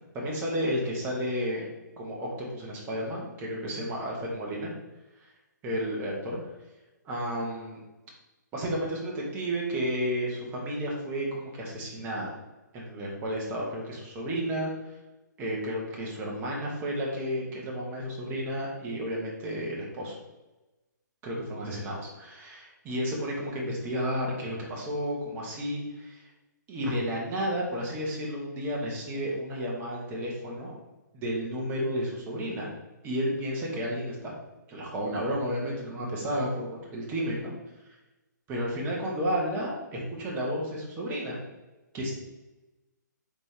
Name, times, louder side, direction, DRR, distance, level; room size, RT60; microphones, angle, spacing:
voice 1, 0.1-1.7 2.0-4.7 5.6-6.4 7.0-7.8 8.5-12.3 12.7-14.7 15.4-20.1 21.2-26.2 26.7-30.8 31.1-32.7 33.0-34.3 34.7-37.5 38.5-41.4 41.9-42.1, equal, 20° right, -2 dB, 1.1 m, -32 dB
4.2 x 3.3 x 3.3 m, 1.1 s
hypercardioid pair, 140°, 10 cm